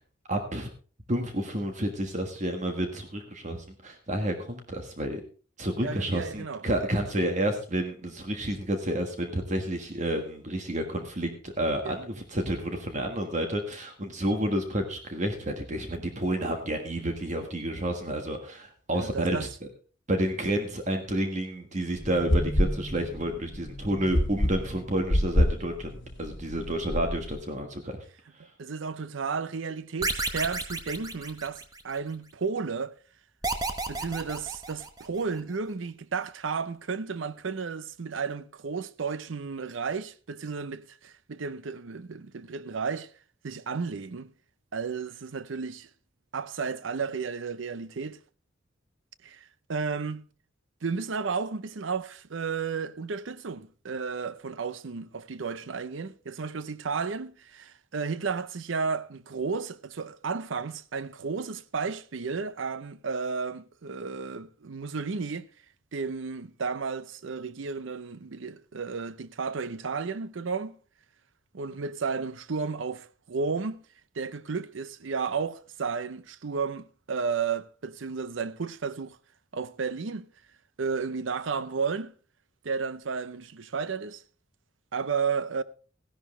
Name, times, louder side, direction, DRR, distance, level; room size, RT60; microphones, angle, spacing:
voice 1, 0.3-0.7 1.1-5.2 5.6-19.7 20.1-28.0, right 1 dB, 40° right, 1.5 m, -30 dB
voice 2, 5.8-6.6 11.8-12.0 18.9-19.5 28.6-32.9 33.9-43.1 43.4-44.3 44.7-45.9 46.3-48.2 49.2-50.3 50.8-65.5 65.9-70.8 71.5-73.8 74.2-79.2 79.5-80.3 80.8-82.1 82.6-84.2 84.9-85.6, right 5 dB, 75° right, 0.6 m, -33 dB
sound 1, 21.9-27.4, left 1 dB, 65° left, 1.6 m, -28 dB
sound 2, 30.0-32.0 33.4-35.2, right 3 dB, 20° right, 1.1 m, -32 dB
15.5 x 11.0 x 3.2 m
head